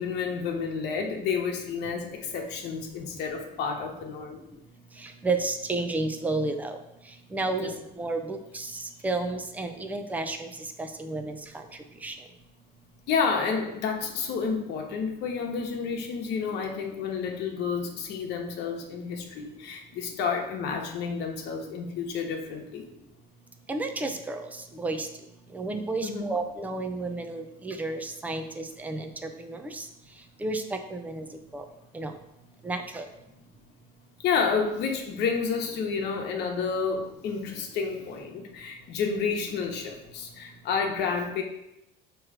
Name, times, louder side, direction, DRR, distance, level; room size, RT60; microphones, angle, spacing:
voice 1, 0.0-4.4 7.6-7.7 13.1-22.9 26.0-26.4 34.2-41.4, left 5 dB, 65° left, 2 dB, 1.1 m, -30 dB
voice 2, 5.2-6.8 7.3-7.7 8.0-8.7 9.0-10.5 11.0-11.4 12.0-12.1 23.7-24.4 24.8-25.1 25.5-29.1 29.4-29.8 30.4-31.2 31.5-31.6 31.9-32.1 32.6-33.1, right 2 dB, 10° right, 6 dB, 0.5 m, -31 dB
6.2 x 3.1 x 4.9 m, 0.86 s
cardioid pair, 130°, 19 cm